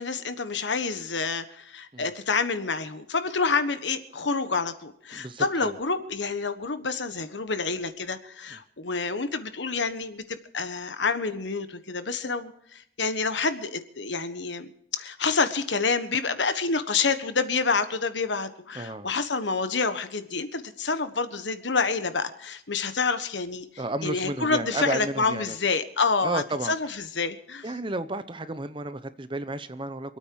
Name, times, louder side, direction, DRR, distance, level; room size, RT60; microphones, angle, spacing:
voice 1, 0.0-23.6 24.0-27.7, left 4 dB, 75° left, 10 dB, 1.4 m, -28 dB
voice 2, 5.1-5.7 18.7-19.1 23.8-25.6 26.2-26.7 27.6-30.2, right 2 dB, 25° right, 12 dB, 0.8 m, -32 dB
27.0 x 9.0 x 4.8 m, 0.69 s
head